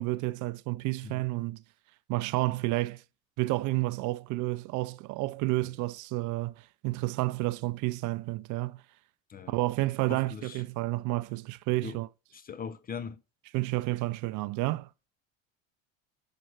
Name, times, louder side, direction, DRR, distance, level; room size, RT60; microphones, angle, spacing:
voice 1, 0.0-1.6 2.1-3.0 3.4-6.5 6.8-8.8 9.5-12.1 13.5-14.9, right 20 dB, 50° right, 0.6 m, -30 dB
voice 2, 10.1-10.6 11.8-12.0 12.3-13.2, left 6 dB, 25° left, 0.5 m, -40 dB
7.8 x 4.9 x 4.5 m
hypercardioid pair, 80°, 39 cm